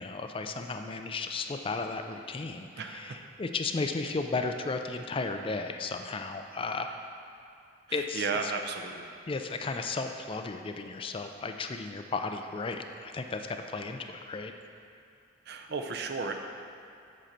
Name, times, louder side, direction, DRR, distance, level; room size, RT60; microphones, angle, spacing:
voice 1, 0.0-6.9 7.9-8.5 9.3-14.5, left 3 dB, 30° left, 6 dB, 0.4 m, -34 dB
voice 2, 2.8-3.2 7.9-9.1 15.5-16.3, right 4 dB, 55° right, 4 dB, 0.5 m, -34 dB
7.5 x 4.4 x 6.5 m, 2.5 s
head